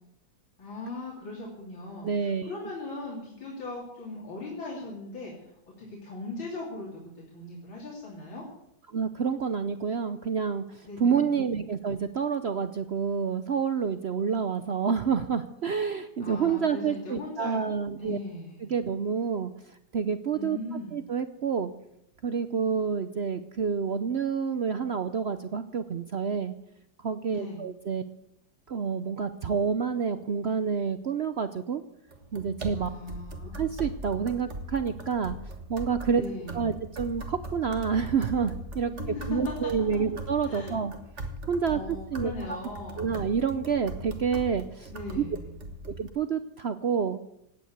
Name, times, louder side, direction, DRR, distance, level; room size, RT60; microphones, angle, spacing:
voice 1, 0.6-7.0 7.3-8.5 10.8-11.4 16.2-17.7 18.0-18.8 20.3-21.0 27.3-27.7 32.7-33.6 36.1-36.8 38.9-40.1 40.4-40.8 41.7-43.2 44.9-45.6, left 2 dB, 90° left, -4 dB, 3.9 m, -39 dB
voice 2, 2.0-2.5 8.9-18.2 18.6-19.5 19.9-20.6 20.9-21.7 22.2-26.5 27.0-28.0 28.7-31.8 32.3-32.9 33.5-35.4 35.7-36.2 36.5-38.9 39.3-40.9 41.5-41.8 42.1-42.3 43.0-44.9 45.2-45.3 46.0-47.2, right 6 dB, 85° right, 10 dB, 0.5 m, -28 dB
sound 1, 32.1-46.1, right 1 dB, 40° right, 1.7 m, -40 dB
17.0 x 9.4 x 8.1 m, 0.80 s
omnidirectional pair, 2.1 m